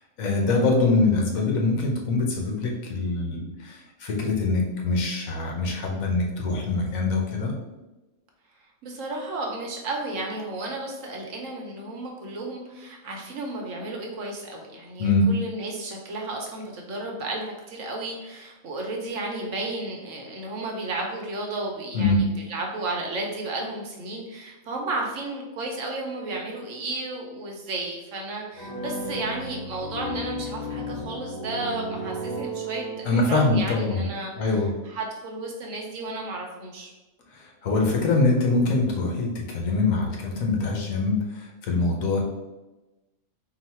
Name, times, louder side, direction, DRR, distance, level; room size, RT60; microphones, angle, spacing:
voice 1, 0.2-7.5 15.0-15.2 21.9-22.2 33.0-34.1 34.4-34.7 37.3-42.2, left 3 dB, 70° left, 0 dB, 1.2 m, -24 dB
voice 2, 8.8-36.9, right 2 dB, 65° right, 0 dB, 1.1 m, -33 dB
sound 1, 28.6-33.5, right 1 dB, 50° left, 0.5 m, -34 dB
3.9 x 2.3 x 4.2 m, 1.1 s
omnidirectional pair, 1.5 m